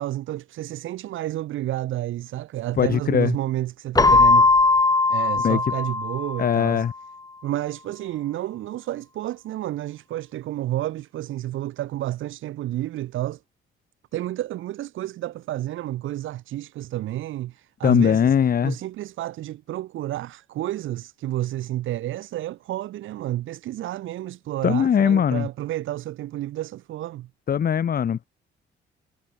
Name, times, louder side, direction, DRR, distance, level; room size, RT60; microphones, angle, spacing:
voice 1, 0.0-4.5 5.1-6.8 7.4-13.4 14.1-18.3 18.6-27.3, right 14 dB, 85° right, 3.1 m, -30 dB
voice 2, 2.8-3.3 5.4-5.6 6.4-6.9 17.8-18.7 24.6-25.5 27.5-28.2, left 8 dB, 45° left, 1.2 m, -20 dB
Keyboard (musical), 4.0-6.7, left 3 dB, 20° left, 1.1 m, -19 dB
cardioid pair, 90°, 20 cm